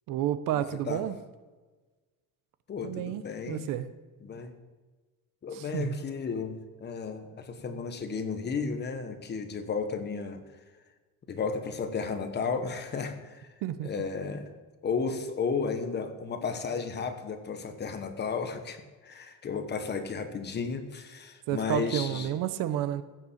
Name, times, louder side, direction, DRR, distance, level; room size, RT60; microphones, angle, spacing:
voice 1, 0.1-1.2 2.8-3.9 5.5-6.0 13.6-13.9 21.5-23.0, right 11 dB, 80° right, 14 dB, 0.9 m, -31 dB
voice 2, 2.7-3.7 4.2-4.5 5.4-10.5 11.3-13.5 13.8-14.5 14.8-22.3, left 5 dB, 30° left, 8 dB, 1.1 m, -33 dB
15.0 x 6.8 x 7.3 m, 1.3 s
cardioid pair, 170°, 33 cm